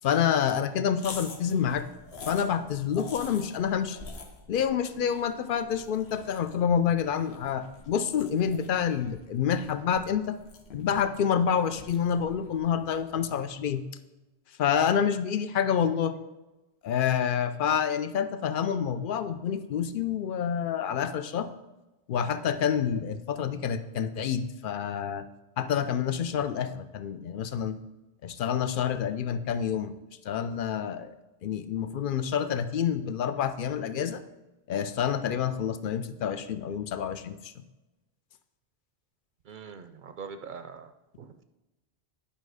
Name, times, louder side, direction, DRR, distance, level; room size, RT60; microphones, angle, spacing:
voice 1, 0.0-1.8 2.3-4.0 4.5-10.4 10.7-13.8 14.6-16.2 16.8-21.5 22.1-25.2 25.6-27.8 28.2-30.0 30.2-31.1 31.4-34.2 34.7-37.6, left 8 dB, 60° left, 12 dB, 0.7 m, -28 dB
sound 1, 0.9-13.4, left 4 dB, 75° left, 1.2 m, -47 dB
voice 2, 39.5-40.9 41.2-41.4, right 6 dB, 60° right, 9 dB, 0.6 m, -42 dB
10.0 x 5.3 x 4.8 m, 1.1 s
omnidirectional pair, 1.1 m